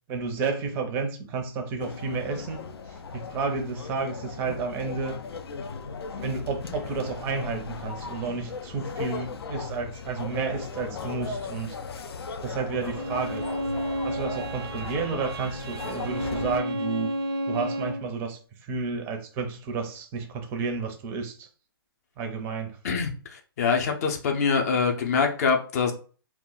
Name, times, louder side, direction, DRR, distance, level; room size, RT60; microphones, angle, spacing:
voice 1, 0.1-2.6 3.1-5.2 6.2-11.8 12.4-13.5 14.0-17.1 17.5-21.5 22.2-22.8, right 4 dB, 20° right, 0.4 m, -31 dB
sound 1, 1.8-16.6, left 5 dB, 90° left, 0.4 m, -37 dB
Bowed string instrument, 12.7-18.1, right 1 dB, 80° right, 0.5 m, -32 dB
voice 2, 22.8-25.9, left 5 dB, 40° left, 0.5 m, -24 dB
2.2 x 2.0 x 3.7 m
hypercardioid pair, 150°, 13 cm